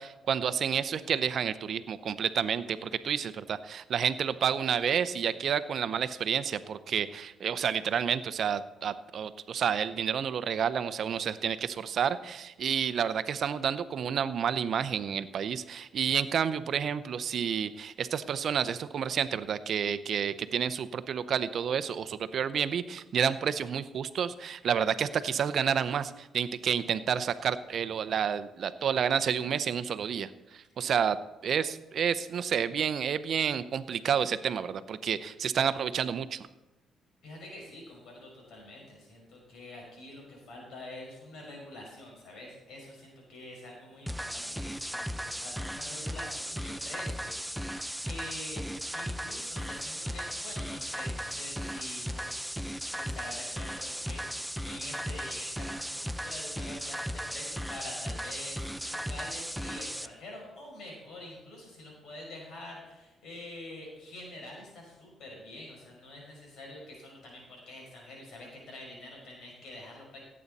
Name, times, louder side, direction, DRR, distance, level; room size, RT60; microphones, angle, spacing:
voice 1, 0.0-31.2 31.4-36.5, right 8 dB, 60° right, 13 dB, 0.7 m, -30 dB
voice 2, 37.2-52.6 52.9-70.2, left 1 dB, 70° left, -1 dB, 5.3 m, -46 dB
sound 1, 44.1-60.1, equal, ahead, 0.5 m, -36 dB
17.0 x 8.6 x 4.1 m, 1.0 s
cardioid pair, 90°, 0 cm